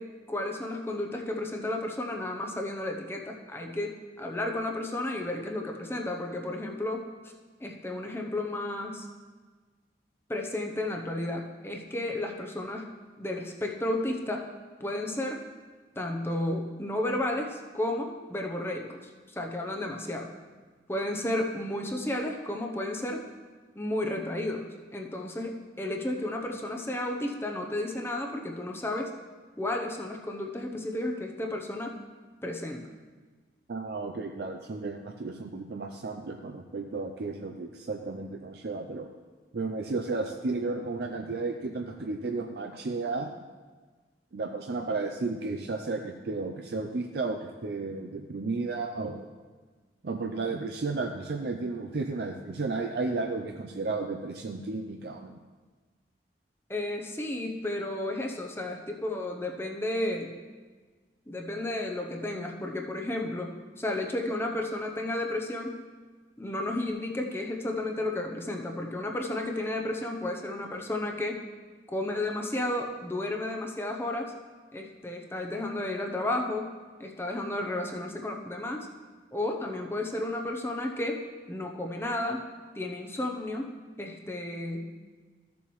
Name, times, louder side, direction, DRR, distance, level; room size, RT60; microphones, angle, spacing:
voice 1, 0.0-7.3 7.6-9.1 10.3-12.9 13.2-14.5 14.8-15.4 16.0-20.3 20.9-23.3 23.7-29.1 29.6-32.0 32.4-32.9 56.7-60.3 61.3-63.5 63.8-65.8 66.4-71.4 71.9-74.3 74.7-78.9 79.3-81.2 81.5-82.4 82.7-83.7 84.0-84.9, left 1 dB, 15° left, 2 dB, 0.7 m, -32 dB
voice 2, 33.7-39.1 39.5-43.3 44.3-49.3 50.0-55.4, right 3 dB, 65° right, 3 dB, 0.5 m, -33 dB
14.0 x 6.9 x 3.1 m, 1.4 s
head